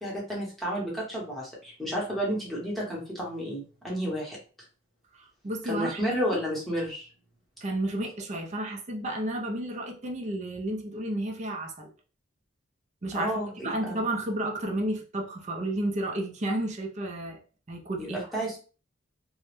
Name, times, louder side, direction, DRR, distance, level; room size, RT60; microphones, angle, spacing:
voice 1, 0.0-4.4 5.6-7.1 13.1-14.0 18.0-18.6, equal, ahead, 0.9 m, -31 dB
voice 2, 5.2-6.0 7.6-11.9 13.0-13.3 13.6-17.4 17.7-18.2, right 1 dB, 35° right, 0.5 m, -32 dB
2.2 x 2.0 x 3.0 m
head